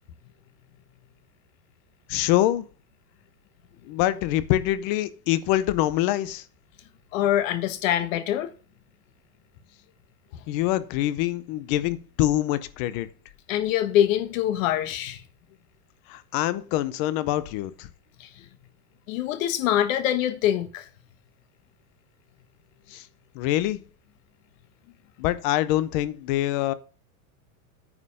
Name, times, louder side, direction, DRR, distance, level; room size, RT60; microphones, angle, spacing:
voice 1, 2.1-2.6 3.9-6.4 10.5-13.1 16.1-17.9 22.9-23.1 23.3-23.8 25.2-26.7, left 14 dB, 30° left, 0.5 m, -25 dB
voice 2, 7.1-8.5 13.5-15.2 18.2-18.3 19.1-20.9, left 11 dB, 55° left, 1.4 m, -24 dB
9.6 x 5.5 x 6.5 m
supercardioid pair, 165°, 47 cm